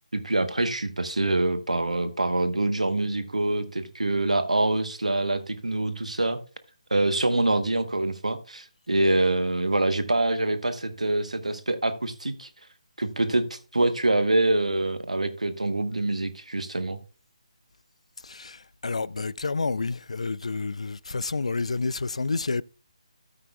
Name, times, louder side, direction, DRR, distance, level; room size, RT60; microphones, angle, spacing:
voice 1, 0.1-6.4 6.9-12.5 13.0-17.0, right 2 dB, 80° right, 1.2 m, -25 dB
voice 2, 18.2-22.6, left 3 dB, 65° left, 0.3 m, -29 dB
13.0 x 9.0 x 2.3 m
figure-of-eight pair, 150°, 4 cm